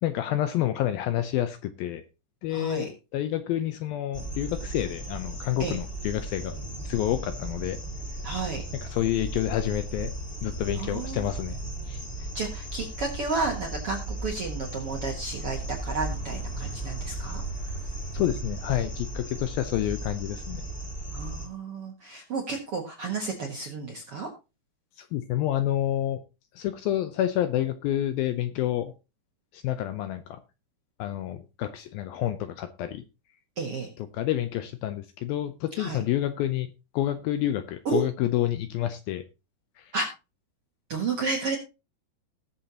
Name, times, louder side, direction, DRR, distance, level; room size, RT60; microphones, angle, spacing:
voice 1, 0.0-2.0 2.4-6.6 6.8-7.8 8.7-10.1 10.4-11.6 11.9-12.0 18.1-20.6 25.0-26.2 26.6-28.9 29.5-30.4 31.0-33.0 34.0-39.2 39.8-39.9, left 13 dB, 80° left, 2.2 m, -29 dB
voice 2, 2.5-2.9 5.6-5.8 8.2-8.6 10.8-11.3 12.3-17.4 21.1-24.3 33.6-33.9 35.8-36.0 37.8-38.0 39.9-40.1 40.9-41.6, right 4 dB, 55° right, 1.6 m, -32 dB
sound 1, 4.1-21.5, right 2 dB, 20° left, 2.0 m, -36 dB
19.0 x 7.1 x 2.9 m
omnidirectional pair, 4.8 m